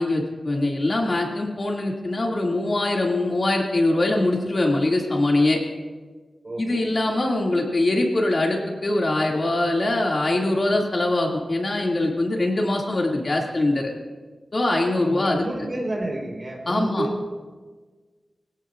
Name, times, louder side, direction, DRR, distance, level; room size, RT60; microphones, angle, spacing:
voice 1, 0.0-5.6 6.6-13.9 14.5-15.7 16.7-17.1, left 2 dB, 45° left, -1 dB, 2.3 m, -23 dB
voice 2, 6.4-6.9 15.0-17.3, right 1 dB, 40° right, 0 dB, 4.2 m, -30 dB
24.5 x 17.0 x 2.5 m, 1.4 s
wide cardioid pair, 115°, 0 cm